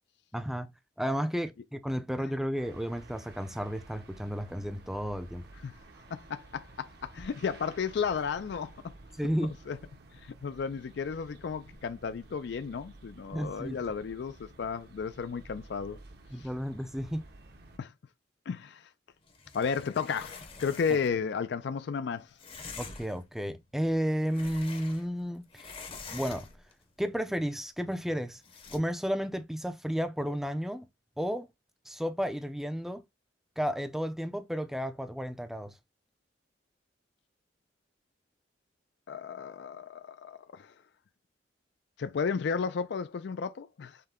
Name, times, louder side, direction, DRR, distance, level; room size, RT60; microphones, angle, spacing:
voice 1, 0.3-5.5 9.2-9.5 13.3-13.8 16.3-17.3 22.8-25.8 26.1-26.5 27.0-28.4 28.7-30.8 31.2-31.5 31.9-33.0 33.6-35.7, equal, ahead, 0.4 m, -32 dB
sound 1, 2.5-17.8, right 2 dB, 55° right, 0.9 m, -52 dB
voice 2, 6.1-8.7 9.7-9.8 10.1-16.0 16.4-16.5 17.8-17.9 18.5-18.9 19.5-22.3 39.1-40.7 42.0-44.0, left 6 dB, 60° left, 0.4 m, -33 dB
sound 2, 19.3-21.2 22.4-23.2 23.9-25.2 25.5-26.7 28.4-28.8, left 4 dB, 30° left, 0.7 m, -46 dB
5.6 x 2.2 x 3.5 m
head